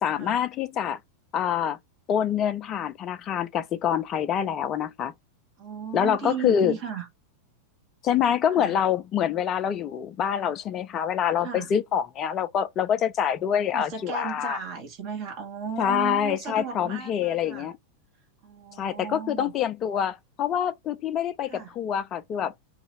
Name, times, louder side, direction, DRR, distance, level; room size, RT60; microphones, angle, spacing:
voice 1, 0.0-1.0 1.3-1.8 2.1-5.1 5.9-6.7 8.0-14.6 15.8-17.7 18.8-22.5, left 9 dB, 30° left, 0.4 m, -26 dB
voice 2, 5.6-7.1 8.5-8.8 11.4-11.7 13.7-17.7 18.4-19.5 21.5-21.8, right 6 dB, 40° right, 1.2 m, -35 dB
2.6 x 2.4 x 2.9 m
figure-of-eight pair, 90°, 0 cm